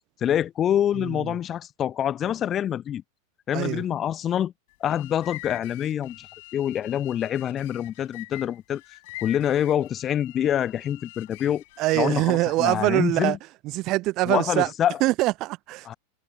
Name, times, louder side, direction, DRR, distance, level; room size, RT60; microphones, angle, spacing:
voice 1, 0.2-3.0 3.5-4.5 4.8-6.3 6.5-8.8 9.2-11.6 12.0-13.4 14.2-15.0 15.8-15.9, left 10 dB, 25° left, 1.1 m, -26 dB
voice 2, 1.0-1.3 3.5-3.8 11.8-13.4 13.6-14.7 15.0-15.9, right 19 dB, 40° right, 0.7 m, -24 dB
sound 1, 4.7-12.3, left 22 dB, 50° left, 7.0 m, -44 dB
figure-of-eight pair, 90°, 0 cm